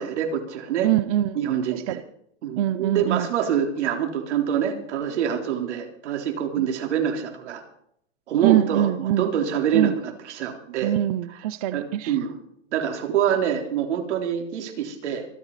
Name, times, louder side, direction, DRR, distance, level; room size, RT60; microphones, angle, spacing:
voice 1, 0.0-0.9 1.3-2.0 2.4-7.6 8.3-10.9 11.7-12.4 12.7-15.3, right 8 dB, 80° right, 3 dB, 3.8 m, -26 dB
voice 2, 0.8-1.4 1.9-2.0 2.6-3.3 6.6-6.7 8.4-9.3 9.7-10.0 10.8-12.2, right 13 dB, 35° right, 14 dB, 0.5 m, -23 dB
26.0 x 9.0 x 4.1 m, 0.69 s
supercardioid pair, 175°, 34 cm